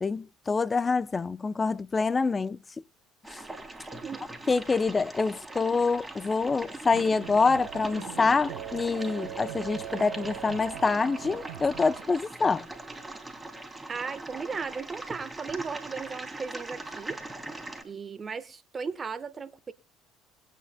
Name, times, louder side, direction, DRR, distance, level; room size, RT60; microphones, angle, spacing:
voice 1, 0.0-2.6 4.5-12.7, left 4 dB, 25° left, 0.6 m, -26 dB
sound 1, 3.2-17.8, right 2 dB, 10° right, 3.1 m, -41 dB
sound 2, 6.9-12.0, right 12 dB, 80° right, 1.6 m, -41 dB
voice 2, 13.9-17.2 17.8-19.7, right 5 dB, 35° right, 1.2 m, -36 dB
21.5 x 9.1 x 2.2 m
hypercardioid pair, 70°, 0 cm